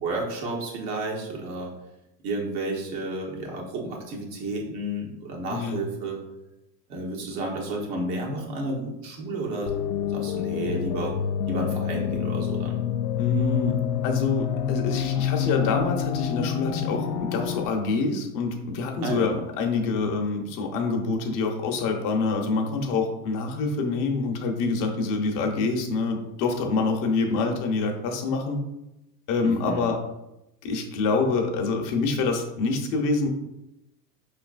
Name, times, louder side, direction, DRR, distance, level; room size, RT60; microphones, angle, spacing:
voice 1, 0.0-1.7 2.2-6.2 6.9-9.7 10.1-11.1 11.5-12.8 19.0-19.4 29.4-29.9, right 2 dB, 50° right, -1 dB, 1.4 m, -31 dB
sound 1, 9.7-17.7, left 9 dB, 85° left, 0.6 m, -27 dB
voice 2, 13.2-28.6 29.3-30.0 30.6-33.3, left 3 dB, 40° left, 3 dB, 0.9 m, -26 dB
5.1 x 3.2 x 2.5 m, 0.92 s
hypercardioid pair, 115°, 49 cm